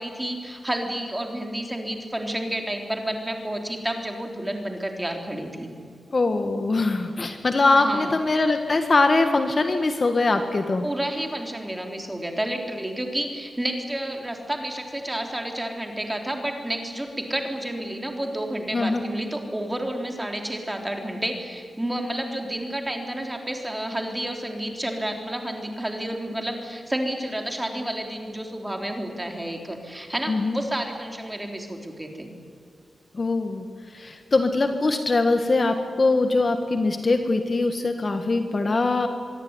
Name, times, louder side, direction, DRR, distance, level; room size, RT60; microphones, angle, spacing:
voice 1, 0.0-5.7 7.7-8.1 10.8-32.3, right 1 dB, 10° right, 3 dB, 3.5 m, -30 dB
voice 2, 6.1-10.8 18.7-19.0 30.3-30.6 33.1-33.6 33.9-39.1, left 3 dB, 35° left, 6 dB, 1.6 m, -22 dB
24.5 x 23.0 x 9.7 m, 2.3 s
wide cardioid pair, 170°, 0 cm